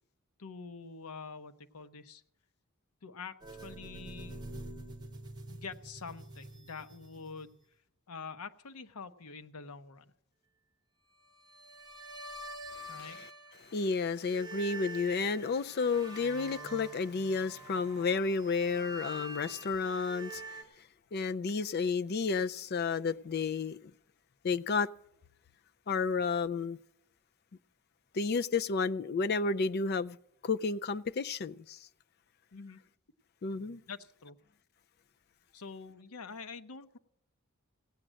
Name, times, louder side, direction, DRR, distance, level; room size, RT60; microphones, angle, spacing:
voice 1, 0.4-2.2 3.0-4.4 5.5-7.5 8.1-10.1 12.9-13.2 32.5-32.8 33.9-34.4 35.5-37.0, left 5 dB, 90° left, 0.8 m, -46 dB
sound 1, 3.4-7.6 11.5-13.8 14.1-20.6, right 2 dB, 20° right, 1.3 m, -46 dB
voice 2, 13.0-13.3 13.7-20.6 21.1-23.8 24.4-24.9 25.9-26.8 28.1-30.2 30.4-31.8 33.4-33.8, left 4 dB, 45° left, 0.4 m, -31 dB
16.0 x 9.0 x 6.2 m
head